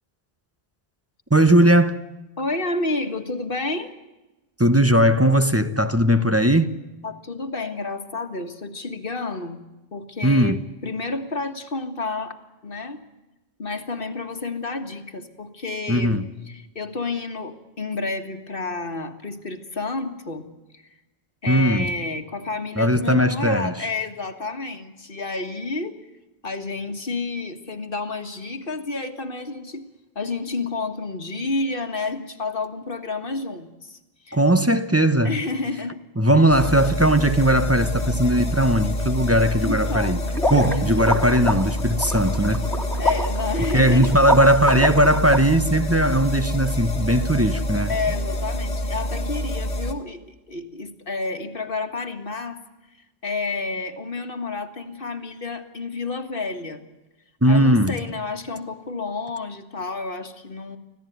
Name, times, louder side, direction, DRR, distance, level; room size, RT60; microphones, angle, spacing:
voice 1, 1.3-2.0 4.6-6.7 10.2-10.6 15.9-16.3 21.5-21.9 22.8-23.9 34.3-35.3 36.2-40.2 40.5-42.6 43.7-47.9 57.4-57.9, right 1 dB, 15° right, 0.9 m, -18 dB
voice 2, 2.4-3.9 7.0-9.6 9.9-10.6 10.8-13.0 13.6-20.5 20.7-20.8 21.4-26.0 26.4-29.8 30.2-34.0 34.3-34.4 35.2-36.0 36.3-36.4 39.6-40.3 40.6-41.1 43.0-44.1 47.9-52.6 53.2-56.8 57.5-60.8, left 3 dB, 55° left, 2.0 m, -30 dB
sound 1, 36.5-49.9, left 1 dB, 85° left, 2.6 m, -27 dB
sound 2, 40.3-45.4, left 1 dB, ahead, 2.2 m, -26 dB
25.5 x 16.5 x 9.3 m
omnidirectional pair, 1.1 m